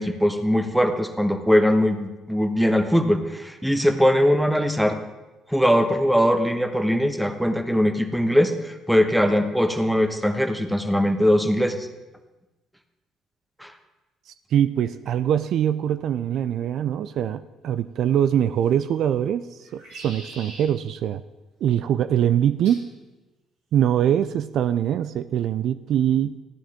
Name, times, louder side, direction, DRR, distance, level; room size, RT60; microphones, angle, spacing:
voice 1, 0.0-5.0 5.5-11.9 13.6-13.7, equal, ahead, 6 dB, 1.2 m, -21 dB
voice 2, 14.3-21.2 21.6-22.9 23.7-26.4, right 10 dB, 60° right, 12 dB, 0.3 m, -23 dB
sound 1, 18.6-19.1 19.6-20.7 22.6-22.9 23.8-24.2, right 2 dB, 80° right, 4.2 m, -43 dB
14.0 x 9.8 x 3.6 m, 1.1 s
hypercardioid pair, 50°, 0 cm